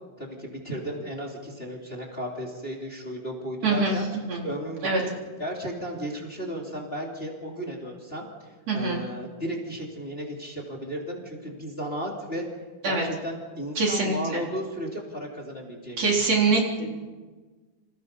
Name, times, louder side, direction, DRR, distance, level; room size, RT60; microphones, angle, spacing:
voice 1, 0.2-4.1 4.4-5.1 5.4-12.5 12.8-16.4, equal, 20° left, -1 dB, 3.4 m, -34 dB
voice 2, 3.6-4.0 4.3-4.4 4.8-5.0 8.7-9.0 12.8-13.0 13.8-14.4 16.0-16.9, right 3 dB, 50° right, -2 dB, 4.8 m, -24 dB
29.5 x 27.0 x 5.5 m, 1.3 s
omnidirectional pair, 3.7 m